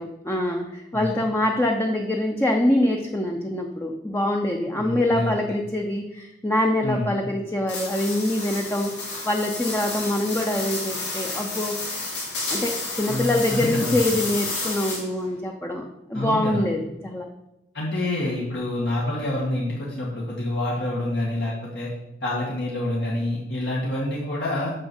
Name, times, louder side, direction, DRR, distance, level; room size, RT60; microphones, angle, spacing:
voice 1, 0.0-8.9 9.2-11.8 12.5-17.3, left 1 dB, 15° left, 2 dB, 0.7 m, -24 dB
voice 2, 4.8-5.3 6.8-7.1 13.1-14.0 16.1-16.6 17.7-21.9 22.2-24.7, left 1 dB, 70° left, -5 dB, 2.2 m, -27 dB
sound 1, 7.7-15.2, left 2 dB, 90° left, 3.9 m, -31 dB
7.6 x 6.2 x 7.0 m, 0.93 s
head